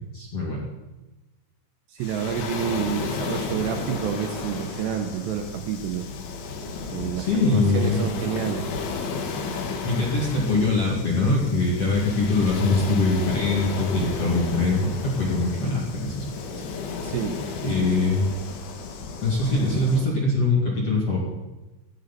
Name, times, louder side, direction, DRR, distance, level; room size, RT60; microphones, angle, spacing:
voice 1, 0.1-0.6 7.2-8.0 9.8-16.3 16.5-16.6 17.6-18.3 19.2-21.2, left 3 dB, 40° left, -3 dB, 2.3 m, -23 dB
voice 2, 1.9-6.1 6.9-8.7 17.0-17.4 17.8-18.1, right 8 dB, 75° right, 5 dB, 2.8 m, -29 dB
Waves surf, 2.0-20.1, left 4 dB, 70° left, 3.9 m, -33 dB
17.5 x 14.0 x 4.2 m, 1.1 s
omnidirectional pair, 5.6 m